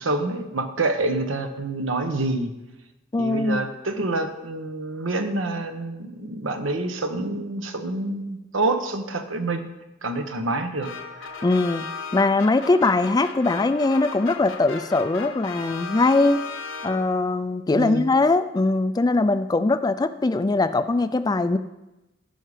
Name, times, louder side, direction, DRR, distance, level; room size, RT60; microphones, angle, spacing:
voice 1, 0.0-2.5 3.2-9.7 10.0-10.9 17.7-18.1, right 2 dB, 80° right, 6 dB, 1.1 m, -27 dB
voice 2, 3.1-3.6 11.4-11.9 12.1-16.4 16.8-21.6, left 2 dB, 20° left, 12 dB, 0.4 m, -21 dB
sound 1, 10.8-17.4, left 5 dB, 75° left, 1.0 m, -36 dB
14.5 x 5.6 x 5.0 m, 0.98 s
head